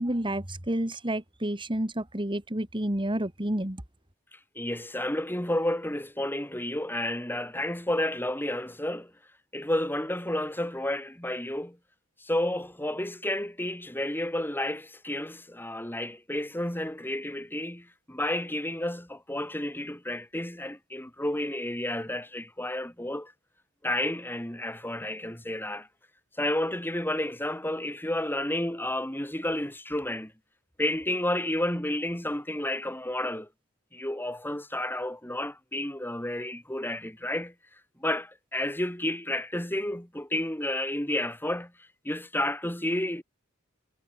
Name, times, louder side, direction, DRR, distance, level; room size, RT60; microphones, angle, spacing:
voice 1, 0.0-3.8, right 1 dB, 25° right, 2.6 m, -30 dB
voice 2, 4.6-9.1 9.5-11.8 12.2-23.3 23.8-25.9 26.4-30.3 30.8-33.5 33.9-37.5 38.0-41.7 42.0-43.2, left 1 dB, 10° left, 6.2 m, -31 dB
head